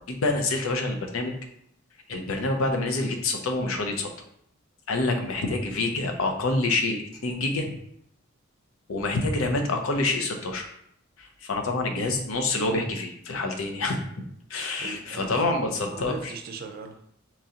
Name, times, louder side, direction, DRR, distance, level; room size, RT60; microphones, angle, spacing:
voice 1, 0.0-1.3 2.1-4.1 4.9-7.7 8.9-10.7 11.2-14.0 14.5-16.3, left 2 dB, 80° left, 3 dB, 0.6 m, -27 dB
voice 2, 14.8-15.5 15.8-17.1, right 4 dB, 50° right, 5 dB, 0.5 m, -39 dB
3.7 x 3.0 x 2.8 m, 0.71 s
head